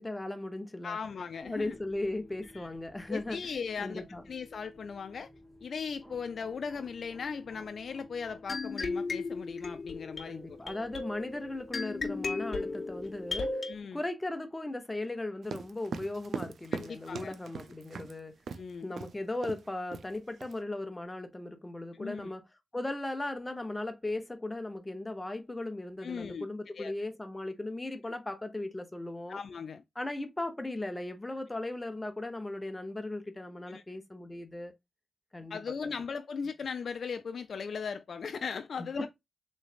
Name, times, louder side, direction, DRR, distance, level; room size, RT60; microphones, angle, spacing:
voice 1, 0.0-1.0 1.4-3.4 3.8-4.2 10.3-13.6 13.9-18.3 18.8-22.4 22.7-29.4 30.0-34.7 35.3-35.9 39.0-39.1, left 2 dB, 20° left, 0.8 m, -37 dB
voice 2, 0.8-1.8 2.5-2.7 3.1-5.3 5.6-10.4 13.6-14.0 16.7-17.3 18.6-18.9 21.9-22.3 26.0-26.5 26.8-26.9 29.3-29.8 33.7-33.8 35.5-39.1, left 6 dB, 75° left, 0.3 m, -38 dB
sound 1, 1.4-13.5, left 1 dB, 15° right, 1.3 m, -54 dB
sound 2, 8.5-13.7, left 3 dB, 55° left, 0.9 m, -36 dB
sound 3, 15.4-18.1 18.5-18.7 19.0-19.1 19.4-19.7 19.9-20.5, right 5 dB, 85° right, 0.4 m, -39 dB
3.8 x 3.2 x 2.4 m
cardioid pair, 55°, 0 cm